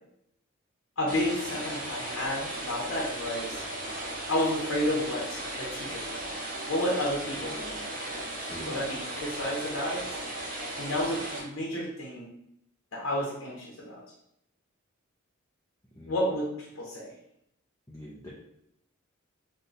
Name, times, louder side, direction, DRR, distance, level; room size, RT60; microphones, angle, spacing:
voice 1, 1.0-3.7 4.3-6.4 6.7-7.7 8.7-10.1 10.8-12.3 12.9-14.0 16.1-17.1, left 1 dB, 80° left, -3 dB, 0.7 m, -31 dB
sound 1, 1.1-11.4, right 1 dB, 40° right, 0.8 m, -36 dB
voice 2, 7.4-7.9 8.4-8.8 16.0-16.2 17.9-18.3, equal, 10° left, -6 dB, 0.4 m, -44 dB
2.6 x 2.2 x 3.8 m, 0.77 s
head